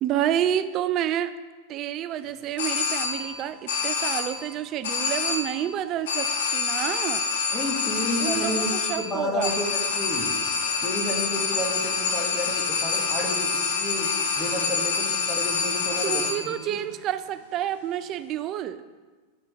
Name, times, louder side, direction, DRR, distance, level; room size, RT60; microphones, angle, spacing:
voice 1, 0.0-1.3 1.7-7.2 8.2-9.5 16.0-18.8, right 11 dB, 35° right, 13 dB, 0.3 m, -29 dB
sound 1, 2.6-3.4 3.7-4.5 4.8-5.7 6.1-16.6, left 5 dB, 55° left, 0.6 m, -27 dB
voice 2, 7.5-10.3 10.8-14.1 14.4-16.8, left 1 dB, 15° left, 0 dB, 1.3 m, -31 dB
9.6 x 4.4 x 3.3 m, 1.3 s
figure-of-eight pair, 90°, 0 cm